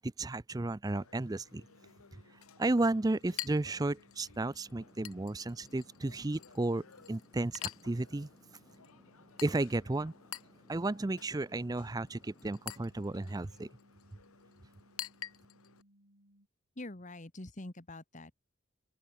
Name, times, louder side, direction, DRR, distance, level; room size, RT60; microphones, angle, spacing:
voice 1, 0.0-1.6 2.6-8.3 9.4-10.1 10.7-13.7, right 2 dB, 15° right, 0.4 m, -33 dB
Chink clink, 0.8-15.8, left 12 dB, 85° left, 1.2 m, -49 dB
sound 1, 1.5-16.5, equal, 65° right, 5.9 m, -66 dB
sound 2, 4.7-12.6, equal, 15° left, 7.8 m, -65 dB
voice 2, 16.8-18.3, left 2 dB, 35° left, 1.5 m, -45 dB
open air
head